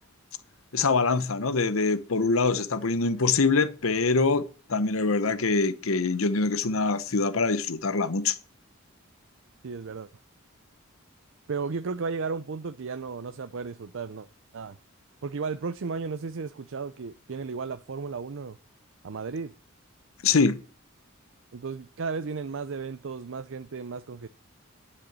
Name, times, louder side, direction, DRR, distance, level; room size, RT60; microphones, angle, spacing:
voice 1, 0.7-8.4 20.2-20.6, left 4 dB, 75° left, 0.9 m, -24 dB
voice 2, 9.6-10.1 11.5-14.3 14.5-14.8 15.2-18.6 19.0-19.5 21.5-24.3, right 4 dB, 65° right, 0.5 m, -34 dB
10.5 x 6.4 x 8.8 m
head